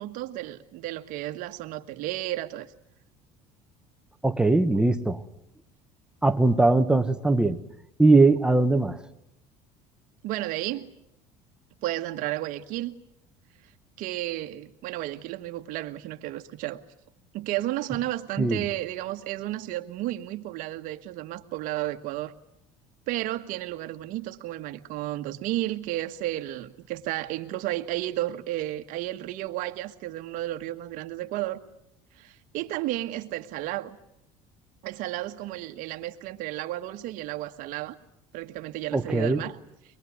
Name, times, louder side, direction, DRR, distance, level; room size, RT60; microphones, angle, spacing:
voice 1, 0.0-2.7 10.2-10.9 11.8-12.9 14.0-16.8 17.3-22.3 23.1-31.6 32.2-34.0 34.8-38.0 38.3-39.6, right 15 dB, 70° right, 1.6 m, -32 dB
voice 2, 4.2-5.2 6.2-7.6 8.0-9.0 18.4-18.6 38.9-39.4, right 2 dB, 5° right, 1.4 m, -20 dB
24.0 x 22.5 x 9.7 m
cardioid pair, 125°, 14 cm